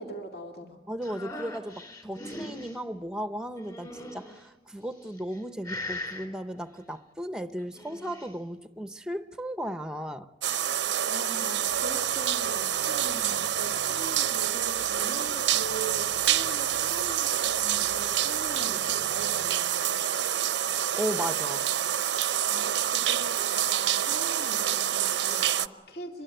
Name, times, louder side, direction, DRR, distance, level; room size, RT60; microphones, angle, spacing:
voice 1, 0.0-0.8 11.1-20.0 22.5-26.2, right 1 dB, 60° left, 2.4 m, -42 dB
voice 2, 0.9-10.3 21.0-21.7, equal, 5° right, 0.8 m, -35 dB
sound 1, 1.0-2.8 3.6-4.4 5.1-5.4 5.6-6.3 7.6-8.3, left 1 dB, 25° left, 3.7 m, -39 dB
sound 2, 10.4-25.7, right 10 dB, 90° right, 0.7 m, -27 dB
sound 3, 11.7-19.5, left 2 dB, 85° left, 4.6 m, -53 dB
25.0 x 22.0 x 9.0 m
head